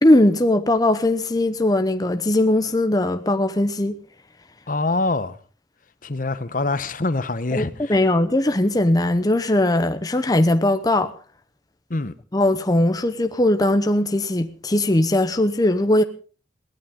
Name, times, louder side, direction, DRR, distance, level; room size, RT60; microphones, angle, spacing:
voice 1, 0.0-4.0 7.5-7.6 7.9-11.1 12.3-16.0, left 1 dB, 20° left, 0.8 m, -19 dB
voice 2, 4.7-5.4 6.0-8.0 11.9-12.1, left 2 dB, 45° left, 1.0 m, -25 dB
22.0 x 16.5 x 3.7 m
head